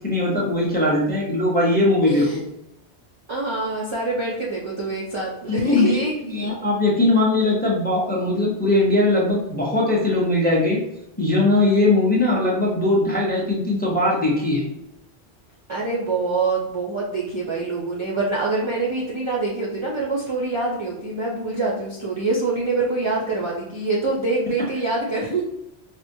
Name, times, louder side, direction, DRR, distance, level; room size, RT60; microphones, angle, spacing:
voice 1, 0.0-2.3 5.4-6.0 6.2-10.8 11.2-14.6, left 2 dB, 10° left, -3 dB, 0.6 m, -20 dB
voice 2, 2.0-2.4 3.3-6.5 15.7-25.4, right 3 dB, 45° right, -4 dB, 0.4 m, -25 dB
4.3 x 2.1 x 2.6 m, 0.84 s
omnidirectional pair, 1.1 m